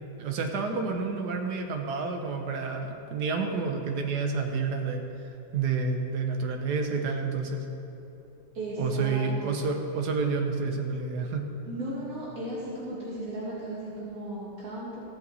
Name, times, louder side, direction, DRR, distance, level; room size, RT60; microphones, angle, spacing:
voice 1, 0.2-7.7 8.8-11.4, right 4 dB, 80° right, 3 dB, 1.5 m, -29 dB
voice 2, 8.5-9.6 11.7-15.0, right 1 dB, 60° right, -8 dB, 2.9 m, -35 dB
15.5 x 7.1 x 4.2 m, 3.0 s
omnidirectional pair, 1.8 m